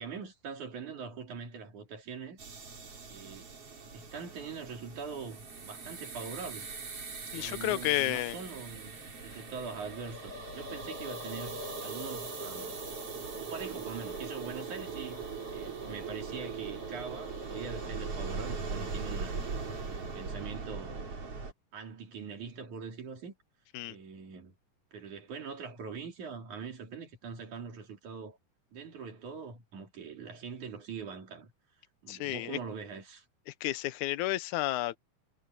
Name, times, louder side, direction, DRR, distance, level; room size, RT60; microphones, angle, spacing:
voice 1, 0.0-2.4 3.1-3.5 3.9-6.7 7.3-12.8 13.3-15.2 15.5-19.4 19.8-21.1 21.7-23.4 23.9-24.5 24.9-28.4 28.7-31.5 32.0-33.2, right 5 dB, 60° right, 4.6 m, -43 dB
sound 1, 2.4-21.5, right 4 dB, 45° right, 4.8 m, -40 dB
voice 2, 7.3-8.4 23.7-24.0 32.1-32.6 33.6-35.0, left 16 dB, 75° left, 1.9 m, -31 dB
omnidirectional pair, 3.9 m